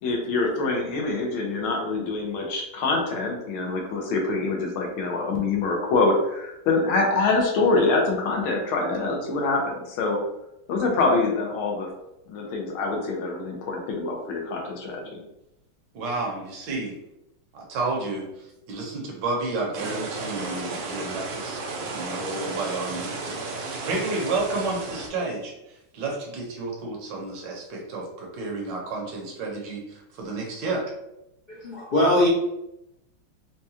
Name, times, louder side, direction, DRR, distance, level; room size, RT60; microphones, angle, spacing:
voice 1, 0.0-10.2 10.7-11.9 12.3-15.2, left 3 dB, 80° left, 0 dB, 1.5 m, -25 dB
voice 2, 15.9-16.9 17.5-30.8, right 3 dB, 65° right, -1 dB, 1.4 m, -31 dB
sound 1, 19.7-25.1, right 3 dB, 85° right, 1.6 m, -33 dB
voice 3, 31.5-32.3, left 1 dB, 50° left, -8 dB, 0.6 m, -21 dB
4.7 x 2.2 x 2.8 m, 0.87 s
omnidirectional pair, 2.3 m